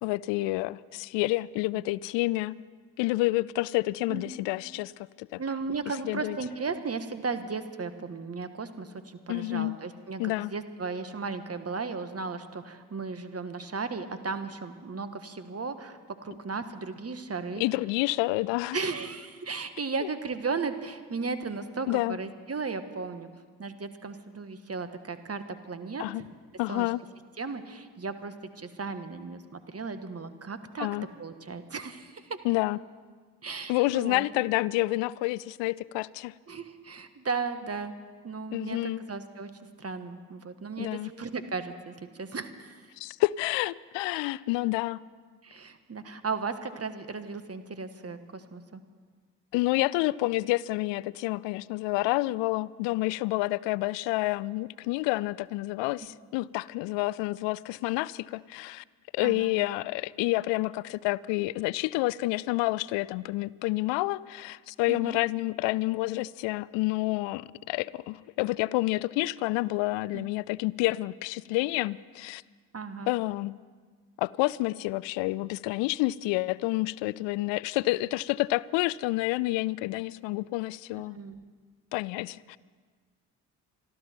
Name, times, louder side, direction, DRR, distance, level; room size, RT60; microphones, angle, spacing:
voice 1, 0.0-2.6 3.0-4.9 5.2-5.4 6.0-6.4 9.3-9.8 10.2-10.5 17.6-18.8 20.0-20.1 21.9-22.2 26.0-26.3 26.6-27.0 30.8-31.1 32.4-32.8 33.7-36.3 38.5-39.0 40.8-41.1 43.0-45.0 49.5-58.8 59.1-72.4 73.1-73.6 74.2-81.2 81.9-82.6, left 20 dB, 70° left, 0.5 m, -29 dB
voice 2, 5.4-17.6 18.7-23.3 23.6-26.3 26.7-26.9 27.4-30.9 31.2-32.4 33.4-34.2 36.5-37.9 38.2-39.5 39.8-42.9 45.4-48.8 59.2-59.5 64.9-65.2 70.1-70.3 72.7-73.1 81.1-81.4, right 4 dB, 30° right, 1.6 m, -35 dB
26.5 x 12.0 x 4.5 m
hypercardioid pair, 40°, 46 cm